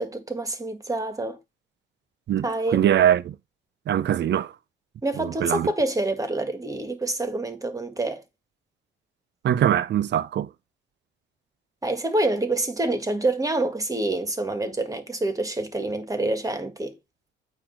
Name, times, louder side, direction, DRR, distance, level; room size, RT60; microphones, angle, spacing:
voice 1, 0.0-1.4 2.4-2.8 5.0-8.2 11.8-17.0, right 2 dB, 15° right, 1.8 m, -27 dB
voice 2, 2.3-3.4 3.9-4.5 5.2-5.7 9.4-10.5, right 10 dB, 60° right, 0.7 m, -22 dB
8.9 x 3.0 x 5.8 m
cardioid pair, 90°, 20 cm